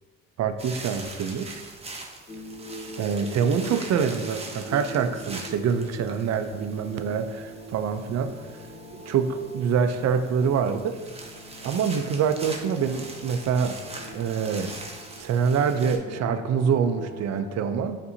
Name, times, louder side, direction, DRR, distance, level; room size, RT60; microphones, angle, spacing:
voice 1, 0.4-1.6 3.0-8.3 8.9-11.0 11.6-13.8 14.1-14.7 15.2-18.0, right 6 dB, 60° right, 8 dB, 0.5 m, -25 dB
sound 1, 0.6-16.0, right 2 dB, 20° right, 0.6 m, -42 dB
sound 2, 2.3-17.4, equal, 40° left, 1.1 m, -43 dB
6.9 x 2.6 x 2.6 m, 1.3 s
cardioid pair, 90°, 30 cm